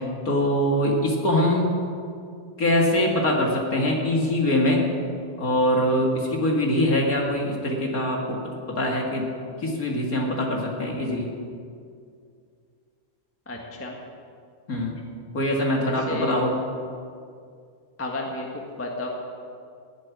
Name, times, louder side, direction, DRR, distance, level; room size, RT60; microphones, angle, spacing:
voice 1, 0.3-1.7 2.6-4.9 5.4-8.4 8.7-9.3 9.6-11.3 14.7-14.9 15.3-16.5, left 1 dB, 35° left, 0 dB, 1.8 m, -23 dB
voice 2, 13.5-13.9 15.7-16.4 18.0-18.5 18.8-19.1, left 2 dB, 10° left, 0 dB, 0.7 m, -32 dB
15.0 x 7.7 x 9.7 m, 2.3 s
omnidirectional pair, 3.5 m